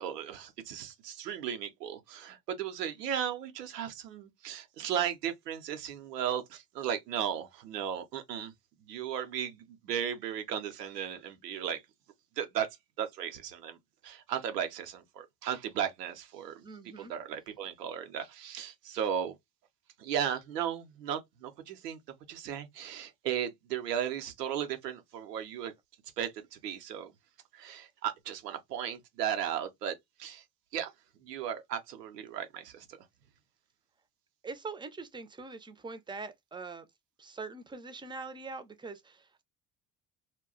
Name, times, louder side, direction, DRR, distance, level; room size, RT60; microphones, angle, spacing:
voice 1, 0.0-8.5 8.8-11.8 12.4-12.7 13.0-13.8 14.0-16.7 17.0-19.3 20.0-22.0 22.3-25.7 26.2-27.1 27.5-29.9 30.2-30.4 30.7-30.9 31.2-32.9, right 9 dB, 90° right, 0.7 m, -35 dB
voice 2, 16.6-17.1 34.4-36.9 37.2-39.4, right 4 dB, 10° right, 0.5 m, -43 dB
2.3 x 2.1 x 3.7 m
hypercardioid pair, 60°, 47 cm